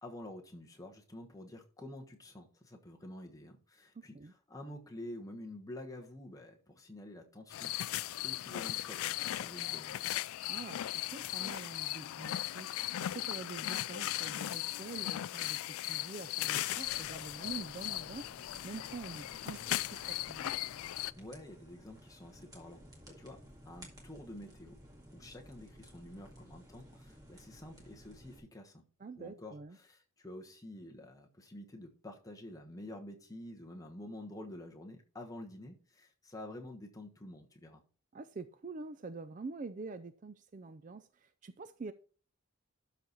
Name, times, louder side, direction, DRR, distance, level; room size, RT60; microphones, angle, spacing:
voice 1, 0.0-7.7 8.1-10.1 21.1-23.4 23.6-24.8 25.1-28.8 29.2-37.8, left 1 dB, 15° left, 1.2 m, -49 dB
voice 2, 4.0-4.3 10.5-12.7 13.0-20.5 29.0-29.8 38.1-41.9, right 4 dB, 35° right, 0.4 m, -46 dB
sound 1, 7.5-21.1, left 14 dB, 80° left, 0.3 m, -37 dB
sound 2, 16.8-28.4, equal, 15° right, 2.0 m, -56 dB
12.5 x 4.1 x 4.5 m
head